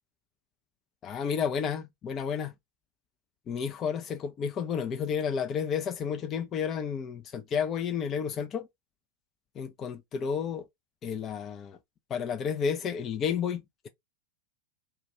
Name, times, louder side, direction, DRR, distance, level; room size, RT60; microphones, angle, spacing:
voice 1, 1.0-2.5 3.5-8.7 9.6-10.6 11.0-11.8 12.1-13.9, left 7 dB, 30° left, 0.3 m, -31 dB
2.2 x 2.1 x 2.9 m
figure-of-eight pair, 90°, 0 cm